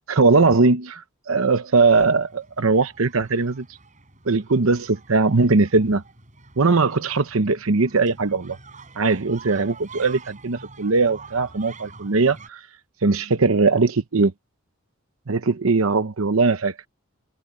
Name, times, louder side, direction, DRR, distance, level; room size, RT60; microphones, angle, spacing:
voice 1, 0.1-3.6 4.3-6.0 6.6-8.6 9.0-12.6 13.0-14.3 15.3-16.7, right 3 dB, 70° right, 0.9 m, -20 dB
sound 1, 1.8-12.5, right 3 dB, 35° right, 5.3 m, -46 dB
head